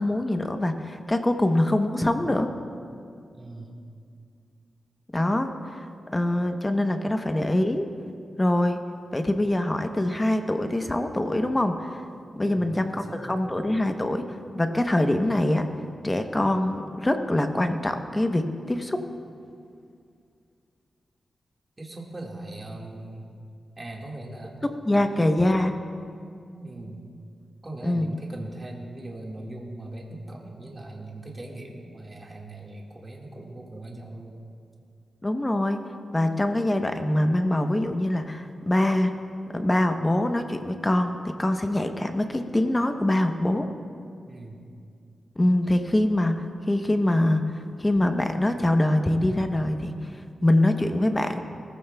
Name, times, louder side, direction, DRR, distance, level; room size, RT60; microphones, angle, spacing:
voice 1, 0.0-2.5 5.1-5.8 6.1-7.9 8.4-8.8 9.1-12.0 12.4-14.3 14.5-15.7 16.0-19.0 24.6-25.7 27.8-28.1 35.2-35.8 36.1-39.1 39.5-43.7 45.4-51.4, left 1 dB, 20° left, 6 dB, 0.8 m, -24 dB
voice 2, 3.3-3.8 12.4-13.4 21.8-23.3 23.8-24.6 25.0-25.4 26.5-27.0 27.6-34.5 44.3-44.7, right 1 dB, 25° right, -1 dB, 1.7 m, -40 dB
19.5 x 14.5 x 2.3 m, 2.3 s
wide cardioid pair, 100°, 0 cm